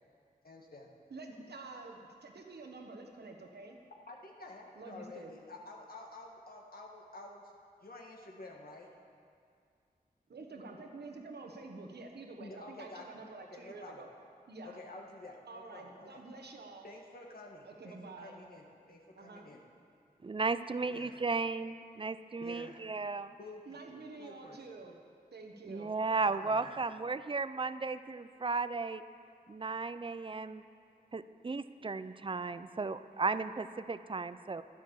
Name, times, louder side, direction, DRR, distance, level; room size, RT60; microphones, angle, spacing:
voice 1, 0.4-0.9 4.1-7.5 7.8-8.9 12.4-14.0 14.6-16.2 16.8-19.6 20.9-21.2 22.4-22.8 23.4-24.6 26.3-26.7, left 2 dB, 65° left, 0 dB, 1.8 m, -50 dB
voice 2, 1.1-3.8 4.8-5.3 10.3-14.1 14.5-14.8 15.5-16.8 17.6-18.4 19.1-19.5 23.7-24.9 25.3-25.9, right 3 dB, 85° right, 2 dB, 1.3 m, -48 dB
voice 3, 20.2-23.3 25.7-29.0 29.5-30.6 31.1-34.6, right 4 dB, 30° right, 13 dB, 0.5 m, -35 dB
11.5 x 9.6 x 7.1 m, 2.3 s
cardioid pair, 45°, 17 cm